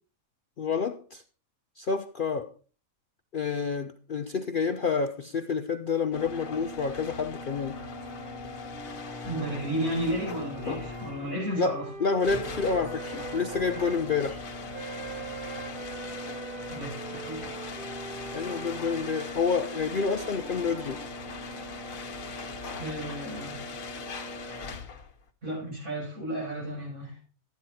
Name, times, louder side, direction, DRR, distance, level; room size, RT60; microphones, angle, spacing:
voice 1, 0.6-1.2 1.8-2.5 3.3-7.8 11.6-14.4 18.3-21.0, left 5 dB, 55° left, 0.6 m, -29 dB
sound 1, 6.1-25.2, left 3 dB, 75° left, 1.5 m, -39 dB
sound 2, 7.8-14.0 14.7-21.8, right 5 dB, 40° right, 1.1 m, -44 dB
voice 2, 9.2-11.8 16.7-17.5 22.8-23.6 25.4-27.1, right 1 dB, 70° right, 7.6 m, -33 dB
12.0 x 9.4 x 4.2 m
omnidirectional pair, 1.5 m